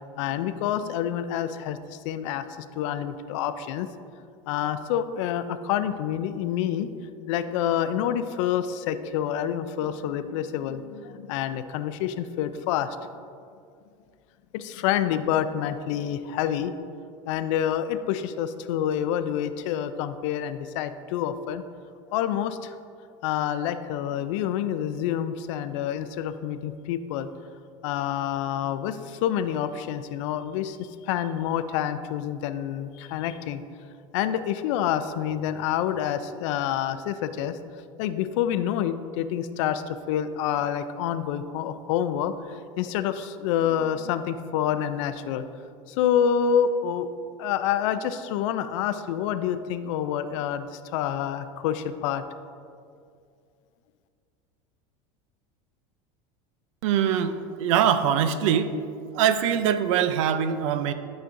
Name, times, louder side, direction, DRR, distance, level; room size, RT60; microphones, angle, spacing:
voice 1, 0.2-3.9 4.5-6.9 7.3-13.0 14.5-16.7 17.3-21.6 22.1-22.7 23.2-27.3 27.8-33.6 34.1-37.6 38.0-45.4 45.9-47.1 47.4-52.2, left 9 dB, 70° left, 11 dB, 0.4 m, -27 dB
voice 2, 56.8-57.3 57.6-58.7 59.1-60.9, right 9 dB, 75° right, 11 dB, 0.5 m, -22 dB
11.0 x 5.1 x 2.6 m, 2.4 s
supercardioid pair, 145°, 16 cm